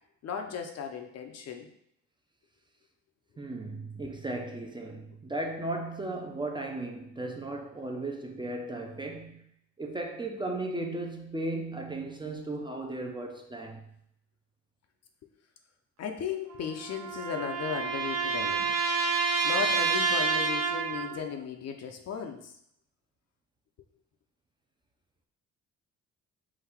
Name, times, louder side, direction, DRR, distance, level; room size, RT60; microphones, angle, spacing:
voice 1, 0.2-1.7 16.0-18.8 19.4-22.5, left 7 dB, 55° left, 0.6 m, -36 dB
voice 2, 3.4-9.4 9.8-13.8, right 2 dB, 15° right, 0.6 m, -36 dB
sound 1, 16.5-21.2, right 5 dB, 60° right, 0.9 m, -29 dB
3.9 x 2.5 x 4.4 m
cardioid pair, 90°, 30 cm